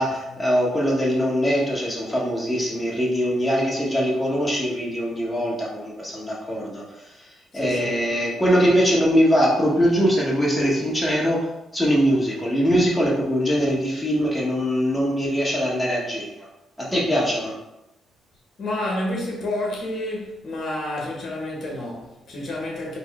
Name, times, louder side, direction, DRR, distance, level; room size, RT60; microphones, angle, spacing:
voice 1, 0.0-11.4 11.7-16.5 16.8-17.5, equal, 10° left, 1.3 m, -22 dB
voice 2, 7.5-8.1 18.6-23.0, left 1 dB, 45° left, 1.1 m, -29 dB
4.0 x 2.1 x 3.5 m
cardioid pair, 90°, 0 cm